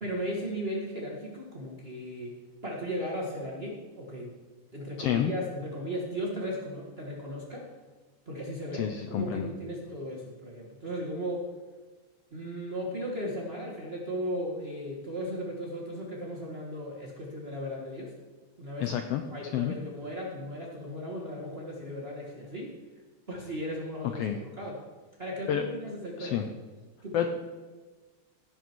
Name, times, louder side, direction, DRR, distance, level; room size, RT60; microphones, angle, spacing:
voice 1, 0.0-2.4 2.6-4.3 4.7-7.7 8.2-11.5 12.3-18.1 18.6-18.9 19.3-22.7 23.3-24.8 25.2-26.4 27.0-27.3, equal, 25° right, -3 dB, 1.4 m, -36 dB
voice 2, 5.0-5.3 8.7-9.5 18.8-19.2 19.5-19.7 24.2-24.4 25.5-25.6 26.2-26.5 27.1-27.3, left 10 dB, 80° left, 6 dB, 1.4 m, -29 dB
17.0 x 6.9 x 4.6 m, 1.3 s
omnidirectional pair, 3.4 m